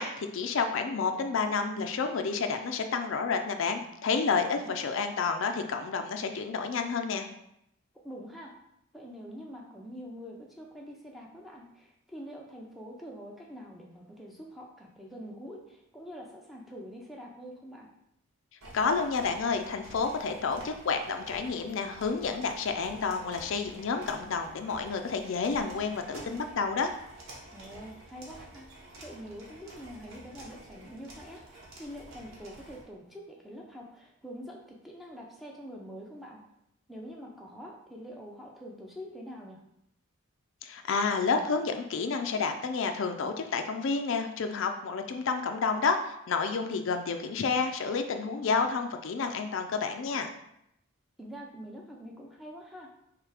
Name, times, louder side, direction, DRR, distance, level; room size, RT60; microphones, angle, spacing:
voice 1, 0.0-7.3 18.7-26.9 40.6-50.3, left 5 dB, 60° left, 6 dB, 0.4 m, -30 dB
voice 2, 8.0-8.6 8.9-17.9 27.5-36.4 36.9-39.6 51.2-52.9, equal, ahead, -1 dB, 0.5 m, -45 dB
sound 1, 18.6-32.8, right 1 dB, 65° right, 1.1 m, -49 dB
3.4 x 3.2 x 4.8 m, 0.78 s
head